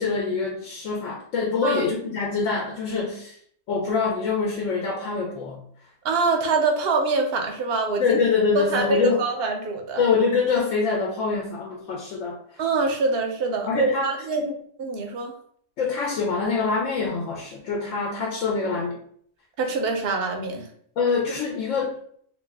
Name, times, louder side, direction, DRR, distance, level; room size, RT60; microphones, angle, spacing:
voice 1, 0.0-3.4 3.7-5.6 8.0-9.2 10.0-12.6 13.7-14.5 15.8-18.9 21.0-22.2, left 5 dB, 75° left, -1 dB, 0.9 m, -25 dB
voice 2, 6.0-8.2 8.5-10.0 12.6-15.3 19.6-20.7, right 3 dB, 60° right, 3 dB, 0.7 m, -25 dB
2.6 x 2.2 x 3.4 m, 0.62 s
omnidirectional pair, 1.3 m